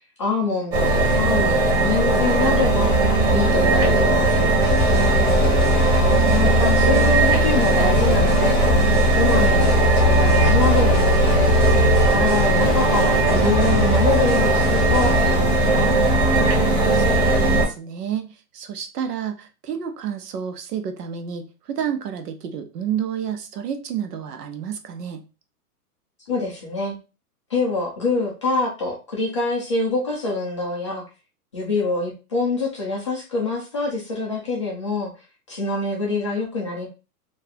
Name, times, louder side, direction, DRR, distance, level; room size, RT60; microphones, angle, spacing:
voice 1, 0.2-2.9 3.3-4.5 6.3-8.6 9.2-11.5 12.1-16.0 26.3-26.9 27.5-31.0 31.5-35.1 35.5-36.9, left 3 dB, 20° left, -3 dB, 0.4 m, -25 dB
sound 1, 0.7-17.7, right 1 dB, 45° right, 1.6 m, -18 dB
sound 2, 4.6-15.3, left 4 dB, ahead, 1.4 m, -31 dB
voice 2, 5.2-5.7 16.9-25.2, right 8 dB, 80° right, 7 dB, 0.9 m, -30 dB
2.8 x 2.7 x 3.9 m, 0.31 s
supercardioid pair, 165°, 47 cm